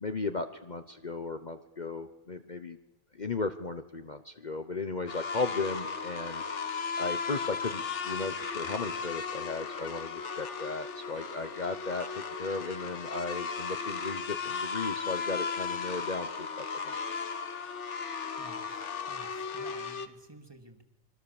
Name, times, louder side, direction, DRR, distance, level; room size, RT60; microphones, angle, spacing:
voice 1, 0.0-2.8 3.1-6.4 7.0-17.0, left 3 dB, 40° left, 8 dB, 1.0 m, -36 dB
sound 1, 5.1-20.1, left 5 dB, 60° left, 1.6 m, -36 dB
voice 2, 18.4-20.8, right 1 dB, 20° right, 4 dB, 2.4 m, -53 dB
26.5 x 23.5 x 7.1 m, 1.0 s
omnidirectional pair, 1.4 m